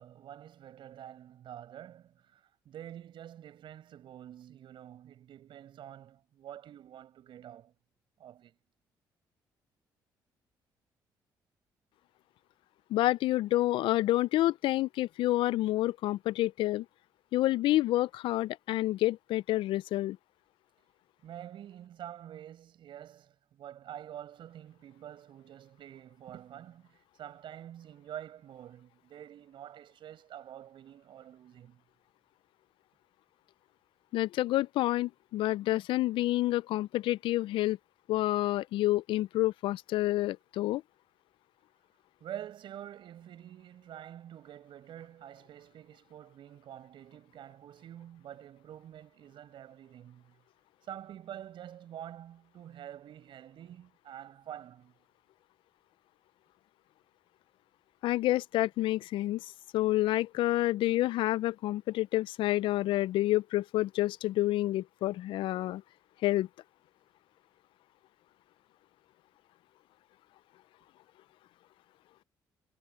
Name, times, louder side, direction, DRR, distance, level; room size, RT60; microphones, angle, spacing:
voice 1, 0.0-7.7 8.2-8.6 21.2-31.8 42.2-50.4 50.8-54.9, right 11 dB, 70° right, 5.0 m, -47 dB
voice 2, 12.9-16.9 17.3-20.2 34.1-37.8 38.1-40.8 58.0-59.4 59.7-65.8 66.2-66.5, left 16 dB, 80° left, 0.4 m, -28 dB
supercardioid pair, 60°, 9 cm